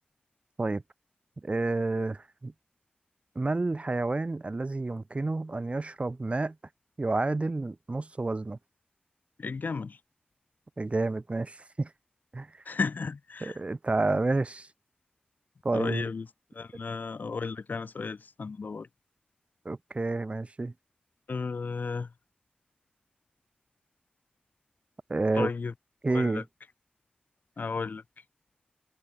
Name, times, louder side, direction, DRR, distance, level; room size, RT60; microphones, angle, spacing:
voice 1, 1.4-2.5 3.4-6.6 7.0-8.6 10.8-11.9 12.3-12.5 13.4-14.7 15.6-16.1 19.7-20.7 25.1-25.5 26.0-26.4, right 2 dB, 45° right, 1.8 m, -29 dB
voice 2, 9.4-10.0 12.7-13.5 15.7-16.3 16.5-18.9 21.3-22.1 25.4-25.7 26.1-26.4 27.6-28.0, left 4 dB, 80° left, 2.6 m, -33 dB
wide cardioid pair, 55°, 3 cm